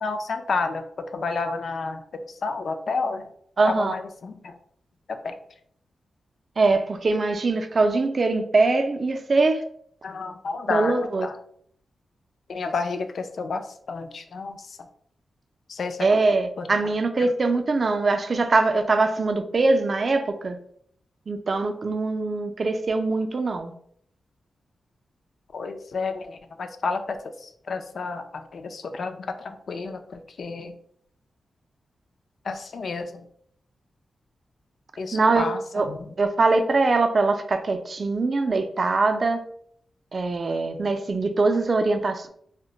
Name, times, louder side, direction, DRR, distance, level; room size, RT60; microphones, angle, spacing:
voice 1, 0.0-3.3 3.6-4.6 5.1-5.3 10.0-11.4 12.5-14.8 15.7-16.1 16.6-16.7 17.2-17.3 25.5-30.8 32.4-33.3 35.0-36.1, left 4 dB, 70° left, 7 dB, 0.3 m, -31 dB
voice 2, 3.6-3.9 6.6-9.6 10.7-11.3 16.0-20.6 21.3-23.7 35.1-35.5 35.7-35.9 36.2-39.4 40.1-42.3, right 3 dB, 50° right, 7 dB, 0.4 m, -22 dB
2.2 x 2.1 x 3.7 m, 0.64 s
cardioid pair, 65°, 0 cm